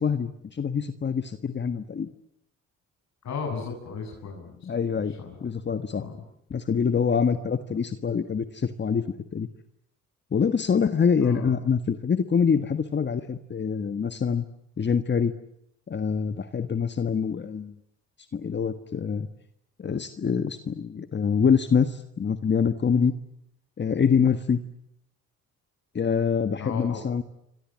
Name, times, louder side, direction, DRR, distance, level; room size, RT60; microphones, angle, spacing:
voice 1, 0.0-2.1 4.6-5.2 5.4-6.0 6.5-9.0 9.3-9.5 10.3-14.4 14.8-15.3 15.9-17.7 18.3-19.3 19.8-23.1 23.8-24.6 25.9-27.2, left 6 dB, 35° left, 10 dB, 1.5 m, -25 dB
voice 2, 3.2-4.7 5.2-5.4 6.0-6.2 11.2-11.5 26.6-27.0, left 5 dB, 65° left, 1 dB, 7.8 m, -34 dB
28.0 x 25.0 x 7.5 m, 0.80 s
cardioid pair, 90°, 30 cm